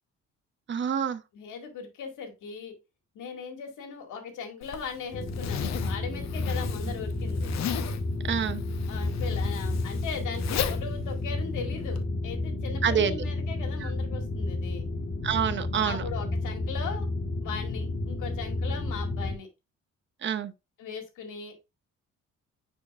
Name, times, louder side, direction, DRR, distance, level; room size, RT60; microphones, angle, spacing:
voice 1, 0.7-1.2 8.3-8.6 12.8-13.2 15.2-16.0 20.2-20.5, right 8 dB, 40° right, 0.8 m, -26 dB
voice 2, 1.3-2.7 3.1-7.5 8.9-14.9 15.8-17.1 17.4-19.5 20.8-21.5, left 6 dB, 80° left, 2.1 m, -39 dB
Zipper (clothing), 4.6-12.0, left 9 dB, 65° left, 0.8 m, -36 dB
sound 1, 5.1-19.4, left 2 dB, 30° left, 1.2 m, -31 dB
9.4 x 4.5 x 2.4 m
cardioid pair, 90°, 30 cm